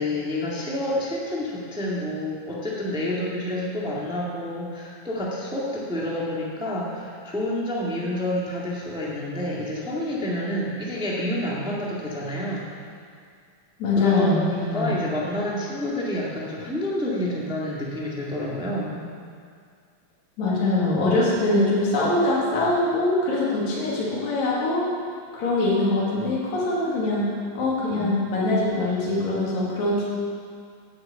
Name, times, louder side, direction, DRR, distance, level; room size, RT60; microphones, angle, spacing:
voice 1, 0.0-12.7 14.0-19.0, left 1 dB, 5° right, -5 dB, 0.4 m, -28 dB
voice 2, 13.8-15.0 20.4-24.8 25.3-30.0, left 2 dB, 60° left, -6 dB, 3.5 m, -23 dB
9.3 x 8.1 x 7.7 m, 2.2 s
omnidirectional pair, 3.9 m